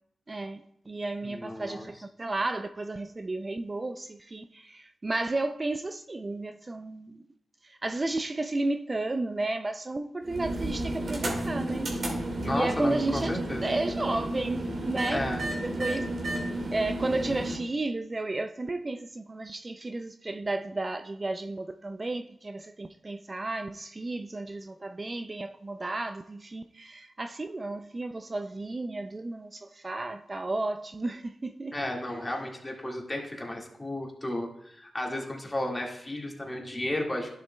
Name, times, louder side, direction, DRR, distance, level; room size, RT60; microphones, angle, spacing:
voice 1, 0.3-7.2 7.6-11.9 12.5-13.3 13.6-15.3 15.6-16.1 16.7-31.8 32.1-32.2, right 2 dB, 35° right, 0.4 m, -33 dB
voice 2, 1.2-1.9 12.4-13.7 15.1-15.5 31.7-37.3, left 1 dB, 20° left, 1.9 m, -33 dB
sound 1, 10.2-17.6, right 1 dB, 60° right, 1.9 m, -32 dB
11.0 x 6.9 x 2.3 m
cardioid pair, 55°, 0 cm